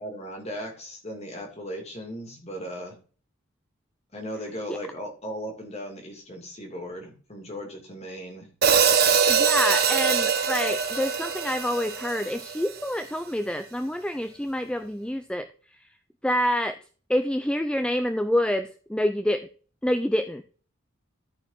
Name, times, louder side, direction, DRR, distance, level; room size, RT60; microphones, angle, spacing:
voice 1, 0.0-2.9 4.1-8.5, equal, 30° left, 2 dB, 2.4 m, -37 dB
Hi-hat, 8.6-12.8, right 6 dB, 45° right, 1.0 m, -23 dB
voice 2, 9.3-15.5 16.2-16.8 17.1-19.5 19.8-20.4, left 1 dB, 5° left, 9 dB, 0.4 m, -27 dB
14.0 x 4.8 x 3.9 m, 0.40 s
head